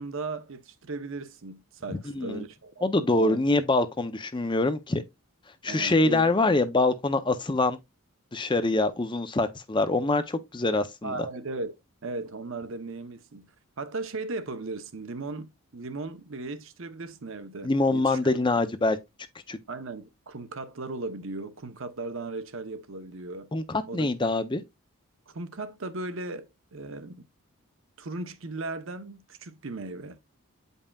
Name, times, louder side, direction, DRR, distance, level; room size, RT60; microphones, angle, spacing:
voice 1, 0.0-2.8 3.2-3.4 5.7-6.3 11.0-11.7 12.0-13.5 13.8-18.2 19.7-23.5 23.9-24.1 25.3-27.2 28.0-30.2, right 3 dB, 60° right, 0.8 m, -37 dB
voice 2, 1.9-2.4 2.8-5.0 5.6-7.8 8.3-11.1 17.6-19.0 19.5-19.6 23.5-24.6, left 2 dB, 20° left, 0.5 m, -25 dB
8.5 x 5.4 x 2.3 m
head